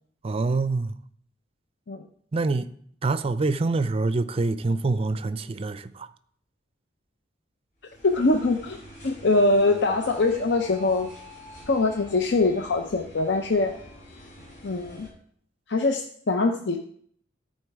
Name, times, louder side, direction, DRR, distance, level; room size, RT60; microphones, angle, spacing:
voice 1, 0.2-1.0 2.3-2.7 3.0-6.1, right 3 dB, 30° right, 0.4 m, -25 dB
sound 1, 7.8-15.1, equal, 45° left, 3.9 m, -46 dB
voice 2, 8.0-8.8 9.0-11.1 11.7-13.7 14.6-15.1 15.7-16.8, left 3 dB, 60° left, 0.6 m, -23 dB
13.0 x 4.4 x 4.7 m
head